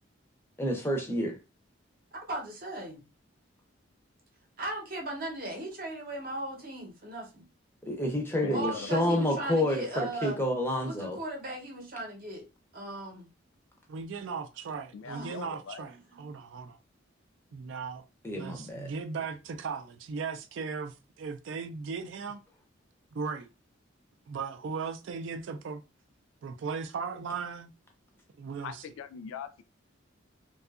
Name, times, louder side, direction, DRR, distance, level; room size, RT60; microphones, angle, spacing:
voice 1, 0.6-1.4 7.8-11.2 18.2-18.9, left 1 dB, 10° left, 0.5 m, -29 dB
voice 2, 2.1-3.0 4.6-7.5 8.5-10.4 10.8-12.5 12.7-13.3 15.1-15.4 16.1-16.3, right 2 dB, 45° right, 0.7 m, -37 dB
voice 3, 8.4-9.2 11.0-11.1 14.9-15.8 28.6-29.6, left 6 dB, 80° left, 0.3 m, -41 dB
voice 4, 13.9-16.8 17.5-18.0 18.3-22.4 23.1-23.5 24.3-25.8 26.4-27.7 28.4-28.8, right 5 dB, 70° right, 0.3 m, -37 dB
2.7 x 2.3 x 2.3 m
head